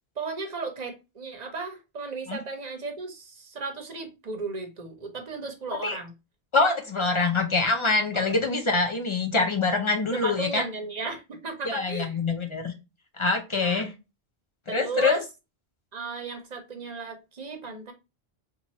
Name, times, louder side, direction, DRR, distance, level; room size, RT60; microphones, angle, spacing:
voice 1, 0.2-6.1 8.1-8.4 10.1-12.2 13.6-13.8 14.7-15.2 15.9-17.9, right 4 dB, 45° right, 0.8 m, -35 dB
voice 2, 6.5-10.6 11.6-12.7 13.2-13.9 14.7-15.2, left 3 dB, 40° left, 0.5 m, -25 dB
2.9 x 2.4 x 4.0 m
omnidirectional pair, 1.1 m